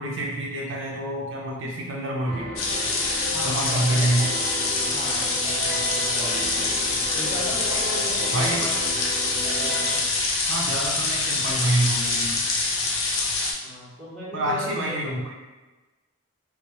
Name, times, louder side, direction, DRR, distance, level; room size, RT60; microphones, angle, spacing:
voice 1, 0.0-2.5 3.4-4.3 8.3-8.8 10.5-12.4 14.3-15.3, right 1 dB, 60° right, -2 dB, 0.5 m, -27 dB
sound 1, 2.2-10.0, right 1 dB, 20° right, 0.7 m, -34 dB
sound 2, 2.6-13.5, left 3 dB, 70° left, 0.6 m, -25 dB
voice 2, 3.3-4.4 4.9-6.6 7.1-8.7 9.6-10.0 13.6-15.0, left 1 dB, ahead, -8 dB, 1.0 m, -37 dB
4.4 x 2.0 x 2.9 m, 1.2 s
head